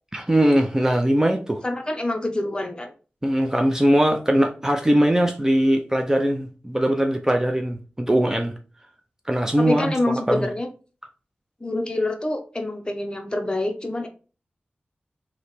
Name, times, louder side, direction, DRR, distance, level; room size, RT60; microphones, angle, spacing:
voice 1, 0.1-1.6 3.2-8.5 9.3-9.9 10.3-10.5, right 1 dB, 15° right, 0.5 m, -20 dB
voice 2, 1.6-2.9 9.6-10.7 11.6-14.1, left 1 dB, 25° left, 0.8 m, -26 dB
3.2 x 2.9 x 4.3 m
wide cardioid pair, 65°, 4 cm